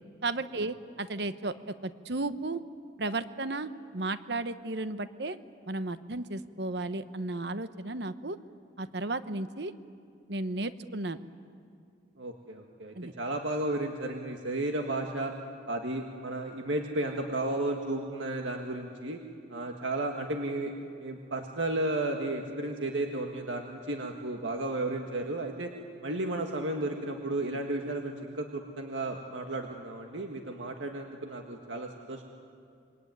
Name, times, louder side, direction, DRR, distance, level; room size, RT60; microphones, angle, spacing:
voice 1, 0.2-2.6 3.0-5.4 5.7-8.4 8.8-9.7 10.3-11.2 12.9-13.1, right 2 dB, 60° right, 12 dB, 1.0 m, -34 dB
voice 2, 12.2-15.3 15.7-19.2 19.5-20.7 21.0-25.7 26.0-32.2, right 2 dB, 80° right, 3 dB, 1.8 m, -33 dB
26.5 x 23.5 x 9.4 m, 2.3 s
head